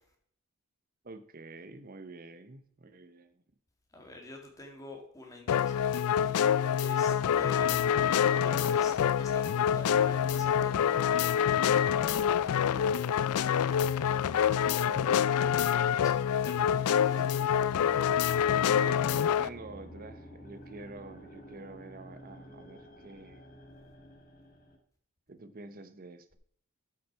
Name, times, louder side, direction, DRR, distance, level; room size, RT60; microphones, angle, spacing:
voice 1, 1.0-3.4 14.8-15.6 18.5-23.4 25.3-26.4, right 2 dB, 40° right, 11 dB, 0.8 m, -47 dB
voice 2, 3.9-7.8 8.0-11.2 16.0-17.4, left 2 dB, 15° left, 1 dB, 1.9 m, -48 dB
sound 1, 5.5-19.5, left 9 dB, 80° left, 0.3 m, -26 dB
sound 2, 7.3-24.8, equal, 40° left, 1.9 m, -50 dB
11.5 x 5.9 x 4.6 m, 0.65 s
head